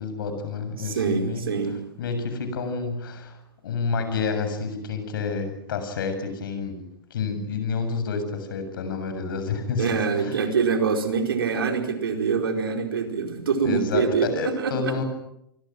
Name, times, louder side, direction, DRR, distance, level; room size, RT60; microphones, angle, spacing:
voice 1, 0.0-1.4 2.0-3.4 3.6-10.4 13.6-15.0, left 4 dB, 65° left, 8 dB, 7.4 m, -29 dB
voice 2, 0.8-1.8 9.8-15.0, right 5 dB, 75° right, 4 dB, 4.7 m, -25 dB
29.0 x 24.5 x 6.2 m, 0.79 s
hypercardioid pair, 105°, 12 cm